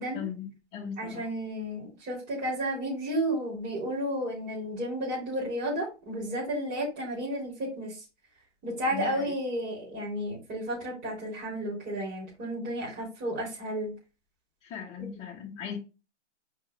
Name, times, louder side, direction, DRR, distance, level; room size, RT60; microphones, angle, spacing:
voice 1, 0.1-1.2 8.9-9.3 14.6-15.8, left 7 dB, 20° left, 1.4 m, -38 dB
voice 2, 1.0-8.0 8.6-13.9, right 1 dB, 25° right, 3.6 m, -32 dB
6.3 x 4.8 x 3.6 m
hypercardioid pair, 135°, 35 cm